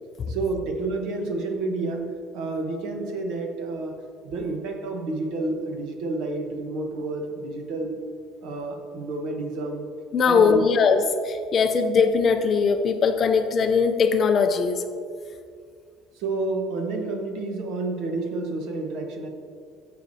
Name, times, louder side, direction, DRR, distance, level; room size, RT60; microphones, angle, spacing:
voice 1, 0.3-3.9 4.2-8.0 8.4-9.9 10.3-10.7 16.2-19.3, right 2 dB, 55° right, 4 dB, 1.0 m, -30 dB
voice 2, 10.1-14.8, left 5 dB, 30° left, 7 dB, 0.4 m, -20 dB
12.0 x 6.6 x 2.7 m, 2.2 s
cardioid pair, 180°, 0 cm